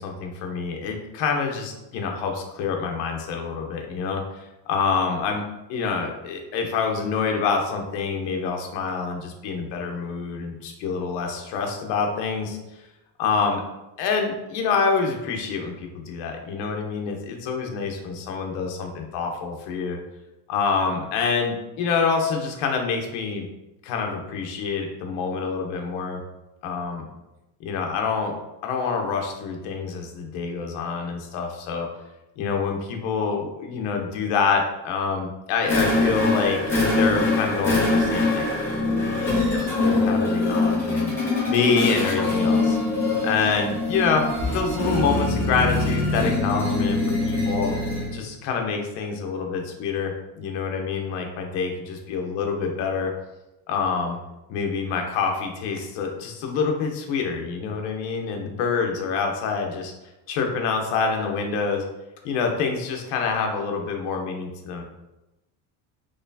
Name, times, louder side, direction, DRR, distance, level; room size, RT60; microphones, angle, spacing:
voice 1, 0.0-5.4 5.7-12.6 13.2-13.6 14.0-20.0 20.5-23.5 23.8-26.2 26.6-27.0 27.6-28.3 28.6-31.9 32.4-41.1 41.5-42.8 43.2-47.7 48.1-53.1 53.7-54.2 54.5-59.9 60.3-61.8 62.2-64.8, left 5 dB, 60° left, 2 dB, 0.8 m, -26 dB
sound 1, 35.6-48.2, left 2 dB, 5° left, 0.7 m, -23 dB
4.1 x 3.2 x 2.7 m, 0.97 s
cardioid pair, 170°, 47 cm